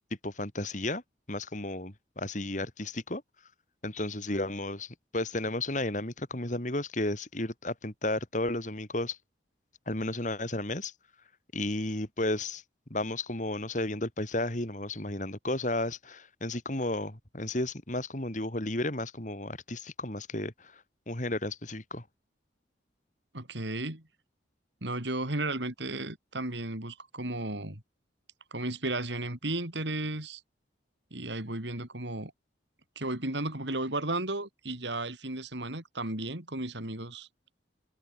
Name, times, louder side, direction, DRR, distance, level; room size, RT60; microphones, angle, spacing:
voice 1, 0.2-1.0 1.3-3.2 3.8-9.2 9.9-10.9 11.5-12.6 12.9-20.5 21.1-22.0, left 2 dB, 40° left, 2.9 m, -33 dB
voice 2, 23.3-24.0 24.8-27.8 28.5-30.4 31.1-32.3 33.0-37.3, right 2 dB, 70° right, 4.7 m, -34 dB
open air
head